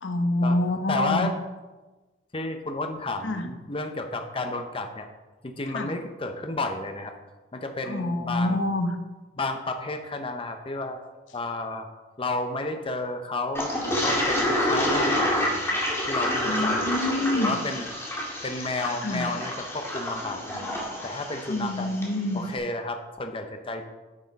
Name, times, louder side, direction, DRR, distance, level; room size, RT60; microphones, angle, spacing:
voice 1, 0.0-1.3 3.2-3.4 5.7-5.9 7.9-8.9 16.5-17.6 19.0-19.3 21.5-22.4, left 1 dB, 90° left, 7 dB, 0.9 m, -26 dB
voice 2, 0.9-1.4 2.3-5.1 5.4-7.1 7.5-8.6 9.4-11.0 11.3-11.9 12.2-16.9 17.3-17.9 18.4-20.8 21.0-21.9 22.3-23.8, left 2 dB, 30° left, 6 dB, 0.7 m, -32 dB
Toilet flush, 13.5-22.1, left 1 dB, 15° left, 1.9 m, -28 dB
8.6 x 6.2 x 5.3 m, 1.2 s
head